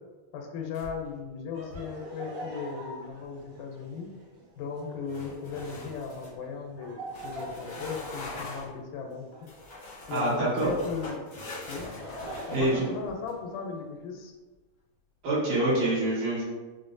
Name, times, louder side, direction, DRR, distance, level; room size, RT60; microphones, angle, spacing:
voice 1, 0.3-4.1 4.6-9.3 10.1-11.2 11.7-11.9 12.5-14.3, left 5 dB, 90° left, 2 dB, 2.1 m, -37 dB
sound 1, 0.7-1.2 1.6-2.0 5.1-6.4 7.1-8.8 9.5-13.3, left 2 dB, 70° left, 0.8 m, -42 dB
Laughter, 1.5-10.6 11.5-13.8, equal, 60° right, 1.4 m, -44 dB
voice 2, 10.1-10.7 12.5-12.9 15.2-16.4, right 1 dB, 85° right, -8 dB, 2.8 m, -26 dB
5.6 x 2.1 x 2.6 m, 1.2 s
omnidirectional pair, 3.3 m